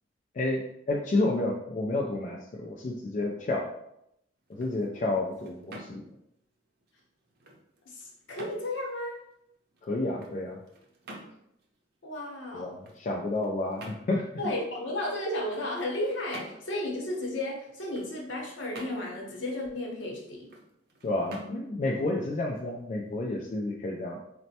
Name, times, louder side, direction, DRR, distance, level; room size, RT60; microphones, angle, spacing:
voice 1, 0.3-3.7 4.5-6.0 9.8-10.6 12.5-14.3 21.0-24.2, left 2 dB, 40° left, -1 dB, 0.3 m, -30 dB
sound 1, 4.4-23.2, right 1 dB, 55° right, 0.6 m, -51 dB
voice 2, 7.9-9.2 12.0-12.7 14.4-20.5, left 1 dB, 65° left, -2 dB, 0.8 m, -33 dB
4.1 x 2.1 x 2.7 m, 0.78 s
head